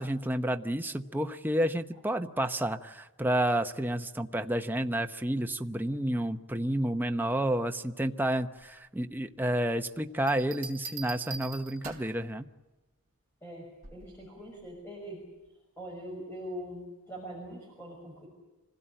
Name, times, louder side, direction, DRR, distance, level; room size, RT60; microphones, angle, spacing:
voice 1, 0.0-12.5, right 1 dB, 10° right, 6 dB, 0.8 m, -30 dB
Bell, 10.3-12.2 13.8-14.2, right 5 dB, 35° right, 3.9 m, -42 dB
voice 2, 13.4-15.2 15.8-18.3, equal, 10° left, -2 dB, 6.0 m, -42 dB
25.5 x 17.0 x 9.0 m, 1.1 s
head